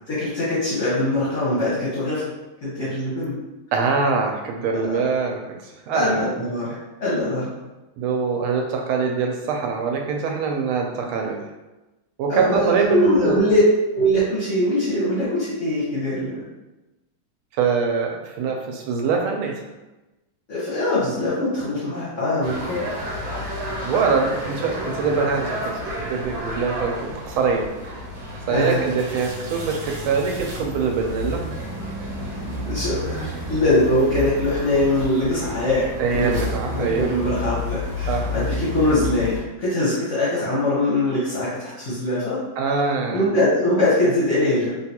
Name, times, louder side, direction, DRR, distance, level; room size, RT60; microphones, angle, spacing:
voice 1, 0.1-2.2 2.6-3.3 4.7-4.8 5.9-6.7 7.0-7.5 12.3-13.6 13.9-16.3 20.5-22.9 28.5-28.8 32.6-35.8 36.1-36.4 36.7-42.4 43.1-44.7, left 1 dB, 55° left, -9 dB, 0.8 m, -22 dB
voice 2, 3.7-5.4 5.9-6.2 8.0-11.4 12.2-13.4 17.6-19.5 23.8-25.5 25.7-27.9 28.5-29.8 30.1-31.4 36.0-37.1 38.1-38.4 42.6-43.2, right 5 dB, 85° right, 2 dB, 1.4 m, -23 dB
sound 1, 22.4-39.4, left 1 dB, 60° right, 1.2 m, -31 dB
3.7 x 2.3 x 2.8 m, 1.1 s
omnidirectional pair, 2.3 m